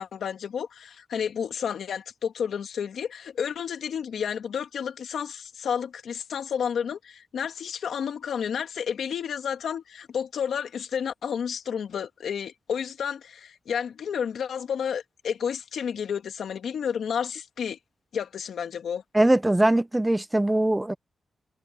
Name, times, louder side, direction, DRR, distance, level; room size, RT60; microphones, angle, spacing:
voice 1, 0.0-17.8 18.1-19.0, left 7 dB, 75° left, 2.4 m, -31 dB
voice 2, 19.1-20.9, right 1 dB, 10° right, 0.6 m, -21 dB
wide cardioid pair, 145°, 0 cm